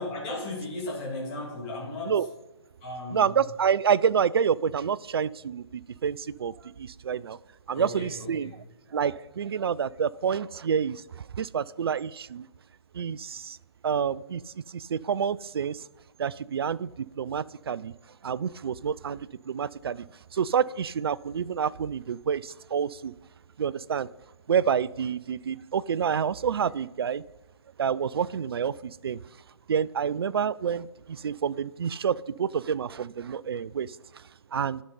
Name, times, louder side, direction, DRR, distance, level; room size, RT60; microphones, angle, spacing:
voice 1, 0.0-2.2 2.8-3.3 7.7-8.5, left 2 dB, 25° left, -3 dB, 2.7 m, -35 dB
voice 2, 3.1-7.4 7.7-8.6 8.9-12.5 12.9-13.6 13.8-15.9 16.2-17.9 18.2-20.1 20.3-23.1 23.6-24.1 24.5-27.2 27.8-29.2 29.7-34.2 34.5-34.8, right 7 dB, 60° right, 19 dB, 0.4 m, -28 dB
11.0 x 6.6 x 5.4 m, 1.1 s
figure-of-eight pair, 140°, 15 cm